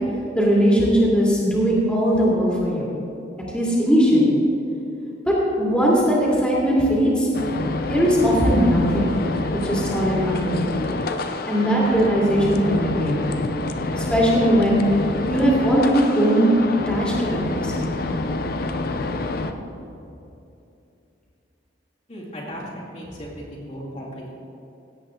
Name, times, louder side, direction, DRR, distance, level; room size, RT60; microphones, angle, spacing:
voice 1, 0.4-2.9 3.5-4.4 5.3-7.3 7.9-9.1 9.6-10.7 11.5-13.4 14.0-14.8 15.3-16.5 16.9-17.7, equal, 5° left, -6 dB, 2.5 m, -19 dB
sound 1, 7.3-19.5, left 2 dB, 55° left, 0.6 m, -27 dB
voice 2, 22.1-24.3, equal, 40° left, -6 dB, 2.4 m, -36 dB
17.0 x 8.3 x 3.7 m, 2.7 s
head